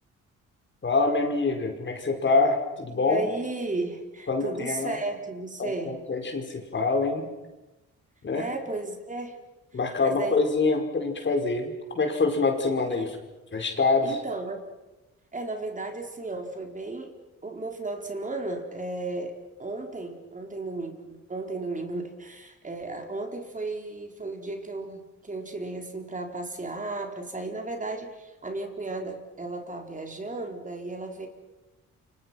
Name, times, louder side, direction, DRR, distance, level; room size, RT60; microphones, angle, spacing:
voice 1, 0.8-3.2 4.3-5.0 5.6-7.3 8.2-8.5 9.7-13.1 13.5-14.2, left 3 dB, 40° left, 4 dB, 5.2 m, -25 dB
voice 2, 2.9-6.0 8.3-9.4 10.0-10.4 12.8-13.1 14.0-14.6 15.3-17.2 17.4-31.3, right 2 dB, 25° right, 3 dB, 4.3 m, -34 dB
29.0 x 26.5 x 6.0 m, 1.1 s
cardioid pair, 90°, 30 cm